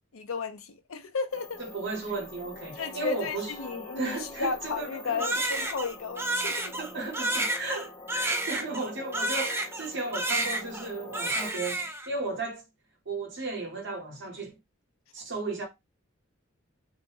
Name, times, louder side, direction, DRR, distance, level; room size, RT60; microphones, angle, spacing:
voice 1, 0.1-1.6 2.8-6.8 15.2-15.3, left 5 dB, 85° left, 0.6 m, -34 dB
sound 1, 1.3-11.5, left 2 dB, 25° left, 0.9 m, -45 dB
voice 2, 1.6-5.2 6.8-12.6 13.0-14.6 15.1-15.7, right 3 dB, 60° right, 1.1 m, -35 dB
Crying sobbing, 5.2-9.9 10.1-10.9 11.1-12.1, right 2 dB, 10° right, 0.4 m, -30 dB
2.6 x 2.2 x 3.2 m
head